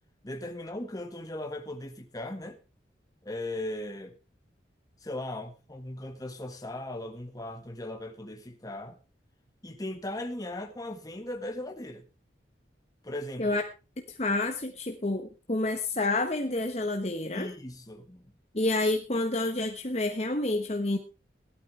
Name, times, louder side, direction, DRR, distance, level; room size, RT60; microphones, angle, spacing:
voice 1, 0.2-2.6 3.2-4.2 5.0-9.0 9.6-12.0 13.0-13.6 17.3-18.4, left 1 dB, 20° left, 1.8 m, -38 dB
voice 2, 14.1-17.5 18.5-21.0, left 2 dB, 35° left, 1.3 m, -29 dB
17.5 x 12.0 x 3.4 m
head